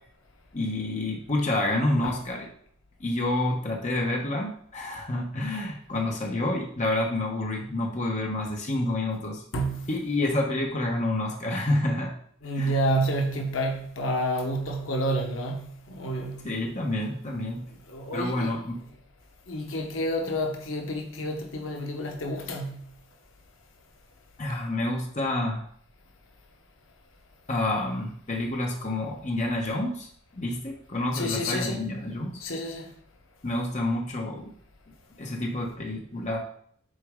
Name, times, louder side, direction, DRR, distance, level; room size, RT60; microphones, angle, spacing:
voice 1, 0.5-2.5 3.0-9.4 9.9-12.1 12.5-12.7 16.4-17.7 18.1-18.8 24.4-25.7 27.5-30.1 30.3-32.4 33.4-34.5 35.2-36.4, left 1 dB, 35° left, 1.0 m, -28 dB
voice 2, 9.5-9.9 12.4-16.5 17.9-18.5 19.5-22.8 31.1-31.8 32.4-32.9, right 1 dB, 80° left, 1.0 m, -29 dB
6.4 x 4.1 x 3.7 m
head